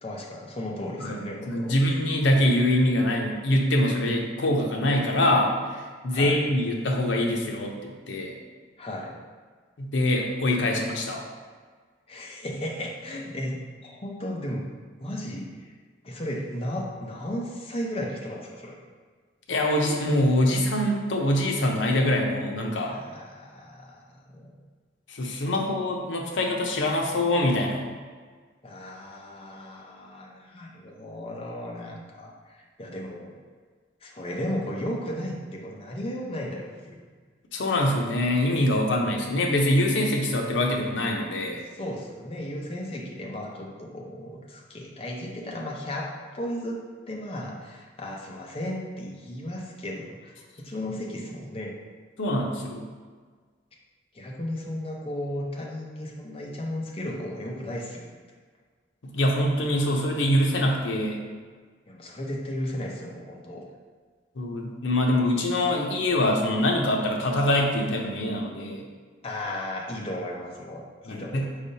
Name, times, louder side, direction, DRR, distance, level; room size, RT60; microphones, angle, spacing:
voice 1, 0.0-1.7 6.1-6.4 8.8-9.2 12.1-14.7 15.0-15.7 16.0-18.8 22.9-24.6 28.6-33.3 34.0-37.1 41.7-51.7 54.1-58.1 61.9-63.7 69.2-71.6, left 1 dB, 30° left, -1 dB, 0.6 m, -35 dB
voice 2, 1.5-5.5 6.0-8.3 9.8-11.2 19.5-22.9 25.1-27.9 37.5-41.6 52.2-52.9 59.0-61.2 64.4-68.8 71.1-71.5, left 1 dB, 80° left, 1 dB, 0.6 m, -24 dB
5.3 x 3.3 x 2.7 m, 1.5 s
head